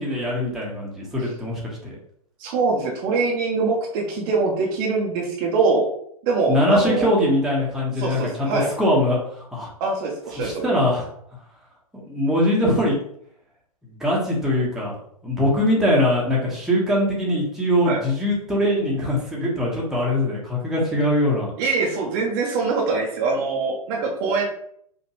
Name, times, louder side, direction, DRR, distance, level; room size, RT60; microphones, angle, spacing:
voice 1, 0.0-1.9 6.5-9.7 10.4-11.1 12.0-13.0 14.0-14.9 15.2-21.5, left 1 dB, ahead, -5 dB, 1.2 m, -22 dB
voice 2, 2.4-5.9 6.2-7.1 8.0-8.7 9.8-10.7 17.8-18.0 21.6-24.5, right 4 dB, 35° right, -1 dB, 1.0 m, -23 dB
5.2 x 2.9 x 3.0 m, 0.66 s
figure-of-eight pair, 110°, 19 cm